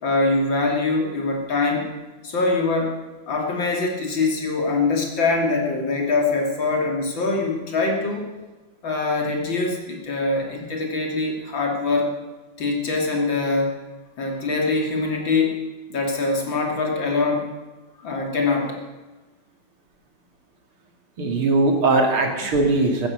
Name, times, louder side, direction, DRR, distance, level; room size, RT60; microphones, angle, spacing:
voice 1, 0.0-1.9 2.2-3.0 3.3-8.3 8.8-12.1 12.6-13.8 14.2-15.6 15.9-17.5 18.0-18.8, left 3 dB, 65° left, 1 dB, 3.6 m, -23 dB
voice 2, 21.2-23.1, right 2 dB, 90° right, 2 dB, 3.5 m, -20 dB
16.0 x 13.5 x 6.7 m, 1.2 s
omnidirectional pair, 2.3 m